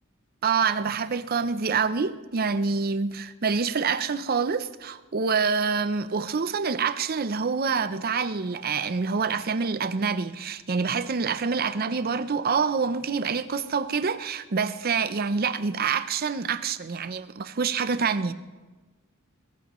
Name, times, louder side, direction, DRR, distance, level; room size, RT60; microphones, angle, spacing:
voice 1, 0.4-18.3, right 5 dB, 45° right, 0.6 m, -26 dB
21.5 x 17.5 x 3.1 m
head